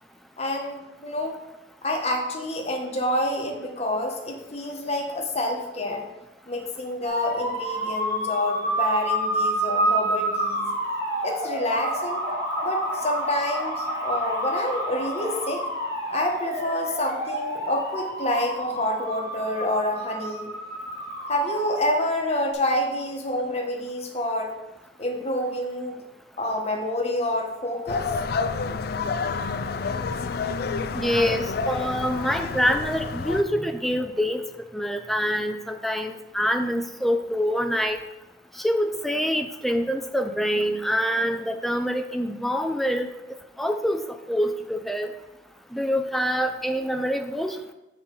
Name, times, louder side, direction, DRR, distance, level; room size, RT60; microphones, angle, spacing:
voice 1, 0.4-1.4 1.8-6.1 6.5-10.6 11.2-12.2 12.6-15.7 16.1-20.5 21.3-24.6 25.0-26.0 26.4-28.2, left 1 dB, 35° left, 1 dB, 1.2 m, -28 dB
sound 1, 7.0-22.5, right 1 dB, 15° right, 1.9 m, -29 dB
sound 2, 27.9-33.4, left 4 dB, 60° left, 0.4 m, -29 dB
voice 2, 30.9-34.4 34.7-38.0 38.6-43.1 43.6-44.0 44.3-45.1 45.7-47.7, equal, ahead, 6 dB, 0.5 m, -25 dB
7.1 x 4.4 x 5.5 m, 0.99 s
head